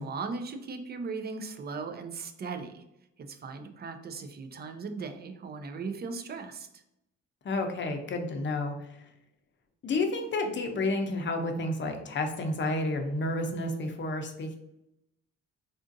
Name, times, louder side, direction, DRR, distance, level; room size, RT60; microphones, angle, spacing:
voice 1, 0.0-2.8 3.2-6.8, right 4 dB, 35° right, 7 dB, 0.4 m, -38 dB
voice 2, 7.4-8.7 9.8-14.6, left 2 dB, 40° left, 4 dB, 0.6 m, -30 dB
3.7 x 2.4 x 2.5 m, 0.82 s
cardioid pair, 90°, 30 cm